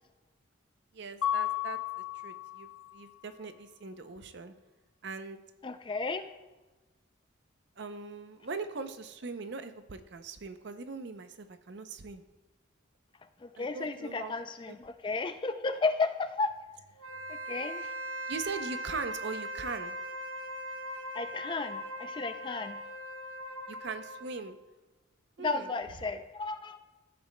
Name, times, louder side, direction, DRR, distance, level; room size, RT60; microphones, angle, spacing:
voice 1, 0.9-1.8 2.2-4.5 5.0-5.4 7.8-12.2 13.6-14.3 14.6-14.8 17.1-17.3 18.3-20.0 23.7-24.6 25.4-25.7, right 4 dB, 55° right, 10 dB, 0.5 m, -40 dB
Mallet percussion, 1.2-3.0, left 12 dB, 80° left, 0.7 m, -33 dB
voice 2, 5.6-6.3 13.4-16.5 17.3-17.8 21.1-22.8 25.4-26.8, left 3 dB, 25° left, 9 dB, 0.3 m, -33 dB
Wind instrument woodwind instrument, 17.0-24.4, right 1 dB, 85° right, 1.1 m, -40 dB
13.5 x 7.1 x 2.2 m, 1.1 s
head